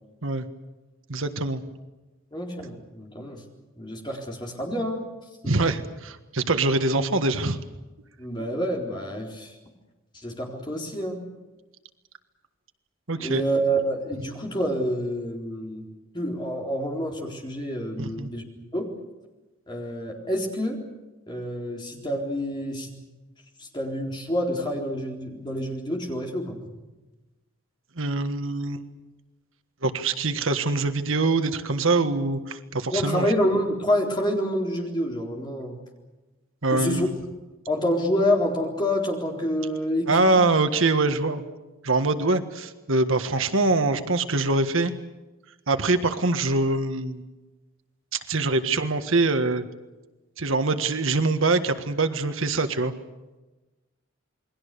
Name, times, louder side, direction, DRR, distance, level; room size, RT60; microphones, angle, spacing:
voice 1, 1.1-1.6 5.4-7.6 13.1-13.4 18.0-18.3 28.0-28.8 29.8-33.3 36.6-37.1 40.1-41.4 41.8-44.9 45.7-47.2 48.1-49.7 50.4-52.9, right 3 dB, 70° right, 8 dB, 1.5 m, -24 dB
voice 2, 2.3-3.4 3.8-5.0 5.4-5.5 8.2-9.5 10.1-11.3 13.2-15.9 16.1-18.4 18.7-18.9 19.7-20.8 21.3-23.0 23.6-26.8 32.9-35.8 36.7-37.1 37.7-40.4, equal, 20° left, 0 dB, 4.0 m, -28 dB
28.5 x 21.5 x 6.9 m, 1.1 s
head